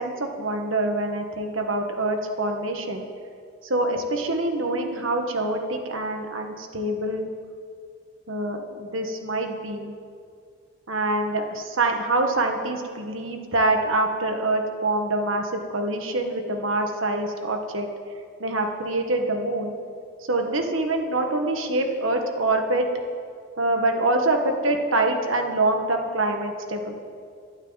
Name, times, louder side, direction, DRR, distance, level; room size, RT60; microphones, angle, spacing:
voice 1, 0.0-3.1 3.7-7.3 8.3-9.9 10.9-17.9 18.4-19.7 20.3-22.8 23.6-26.9, right 2 dB, 80° right, 4 dB, 1.6 m, -25 dB
21.0 x 11.5 x 4.1 m, 2.2 s
head